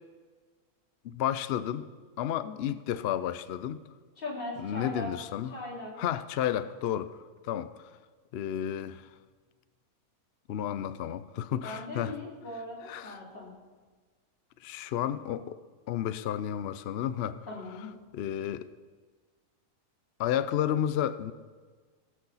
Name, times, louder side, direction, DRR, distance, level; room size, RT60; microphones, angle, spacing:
voice 1, 1.0-1.9 2.2-3.8 4.6-5.5 6.0-7.2 7.4-7.9 8.3-9.1 10.5-12.2 12.8-13.2 14.6-15.6 15.9-17.5 18.1-18.7 20.2-21.3, left 10 dB, 70° left, 0.6 m, -32 dB
voice 2, 2.4-2.7 4.2-5.1 5.5-5.9 11.6-13.5 17.5-17.9, left 2 dB, 35° left, 3.0 m, -39 dB
17.5 x 6.6 x 5.5 m
omnidirectional pair, 1.6 m